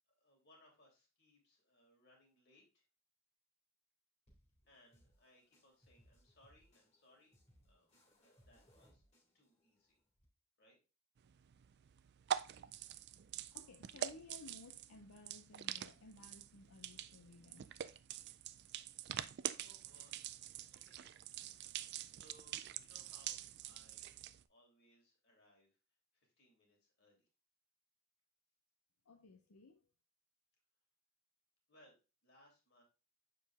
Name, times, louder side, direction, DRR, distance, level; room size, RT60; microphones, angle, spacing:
voice 1, 0.2-2.8 4.7-7.4 7.6-7.9 8.2-9.0 9.3-10.0 10.6-10.8 18.4-18.5 19.6-21.0 22.1-24.2 24.5-25.7 26.1-27.3 31.7-31.9 32.2-32.8, left 1 dB, 50° left, 2.8 m, -68 dB
sound 1, 4.3-10.2, equal, 30° left, 2.1 m, -71 dB
sound 2, 11.2-24.4, right 10 dB, 50° right, 0.3 m, -46 dB
voice 2, 13.5-17.7 29.0-29.9, left 3 dB, 80° left, 0.7 m, -58 dB
7.3 x 4.5 x 3.5 m
head